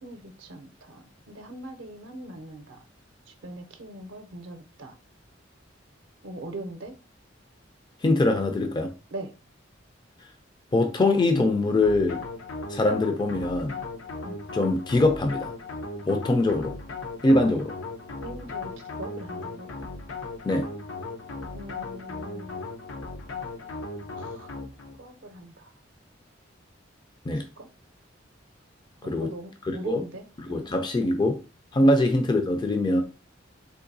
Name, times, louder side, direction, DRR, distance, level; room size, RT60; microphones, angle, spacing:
voice 1, 0.0-2.8 3.3-5.0 6.2-6.9 9.1-9.3 14.2-14.4 18.2-19.7 21.5-22.6 23.8-24.5 25.0-25.7 27.3-27.7 29.0-30.7 31.8-31.9, right 1 dB, 70° right, 0.5 m, -41 dB
voice 2, 8.0-8.9 10.7-12.2 12.7-13.8 14.5-15.5 16.1-16.7 17.2-17.7 20.4-20.7 27.3-27.5 29.0-29.3 29.7-30.0 30.5-31.4 31.7-33.0, left 2 dB, 25° left, 0.3 m, -23 dB
sound 1, 11.8-25.0, left 3 dB, 90° left, 0.6 m, -37 dB
3.7 x 2.6 x 2.6 m
head